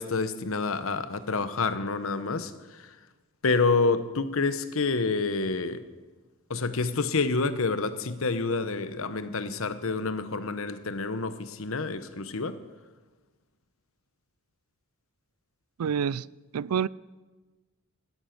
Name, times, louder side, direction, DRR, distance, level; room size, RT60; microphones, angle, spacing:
voice 1, 0.0-3.0 3.4-5.8 6.5-12.6, left 4 dB, 65° left, 1.0 m, -28 dB
voice 2, 15.8-16.3 16.5-16.9, right 7 dB, 85° right, 0.4 m, -27 dB
15.5 x 13.0 x 6.0 m
head